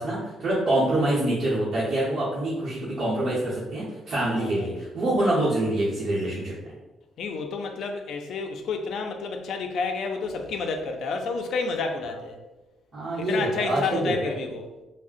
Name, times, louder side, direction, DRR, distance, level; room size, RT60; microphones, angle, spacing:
voice 1, 0.0-6.5 12.9-14.2, right 1 dB, 55° right, -9 dB, 0.9 m, -25 dB
voice 2, 4.4-4.7 7.2-12.4 13.2-14.7, left 4 dB, 70° left, 5 dB, 0.4 m, -30 dB
3.6 x 2.0 x 2.5 m, 1.1 s
cardioid pair, 90°, 0 cm